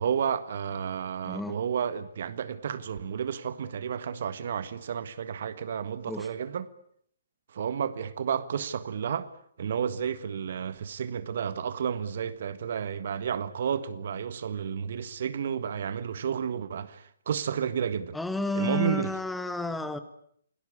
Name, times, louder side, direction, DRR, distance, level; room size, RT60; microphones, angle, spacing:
voice 1, 0.0-6.7 7.5-9.3 9.6-18.2 18.5-19.1, right 7 dB, 55° right, 1.6 m, -31 dB
voice 2, 1.2-1.6 6.1-6.3 18.1-20.0, left 1 dB, 5° left, 1.5 m, -31 dB
29.0 x 18.5 x 8.6 m
figure-of-eight pair, 135°, 0 cm